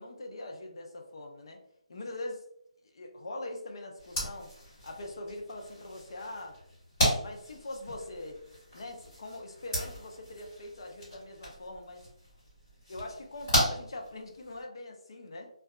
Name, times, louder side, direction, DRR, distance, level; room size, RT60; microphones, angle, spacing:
voice 1, 0.0-1.6 1.9-2.4 2.8-4.5 4.8-6.6 7.2-8.4 8.7-12.0 12.9-15.5, left 2 dB, 45° left, 2 dB, 0.5 m, -42 dB
sound 1, 4.0-14.6, equal, 20° left, 1.5 m, -35 dB
2.7 x 2.3 x 2.3 m, 0.72 s
hypercardioid pair, 175°, 4 cm